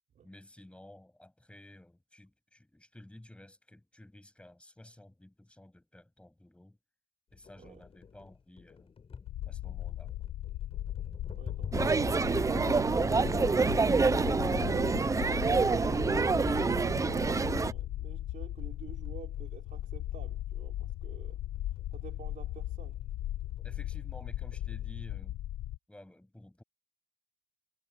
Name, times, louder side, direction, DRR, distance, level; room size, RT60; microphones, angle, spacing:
voice 1, 0.2-6.8 7.3-8.9 9.5-10.1 23.6-25.4 25.9-26.6, left 1 dB, 5° left, 7.9 m, -53 dB
sound 1, 7.3-24.9, left 6 dB, 35° left, 6.8 m, -51 dB
sound 2, 9.3-25.8, left 13 dB, 70° left, 1.4 m, -38 dB
voice 2, 11.3-13.6 14.0-23.0, right 8 dB, 50° right, 5.2 m, -49 dB
sound 3, 11.7-17.7, right 4 dB, 20° right, 0.6 m, -27 dB
cardioid pair, 110°, 17 cm